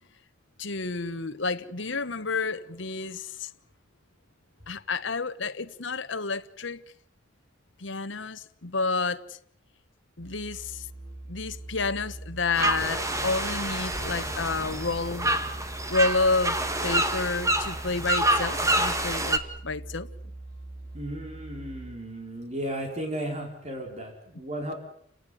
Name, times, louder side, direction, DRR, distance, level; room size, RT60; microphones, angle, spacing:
voice 1, 0.6-3.5 4.7-6.8 7.8-9.2 10.2-10.9 11.3-15.3 15.9-20.1, left 3 dB, 65° left, 1.3 m, -30 dB
Musical instrument, 10.2-22.2, right 1 dB, 60° right, 4.1 m, -41 dB
sound 1, 12.6-19.4, right 1 dB, 15° right, 2.1 m, -27 dB
voice 2, 20.9-24.7, right 1 dB, 35° right, 4.8 m, -35 dB
30.0 x 17.5 x 9.5 m
head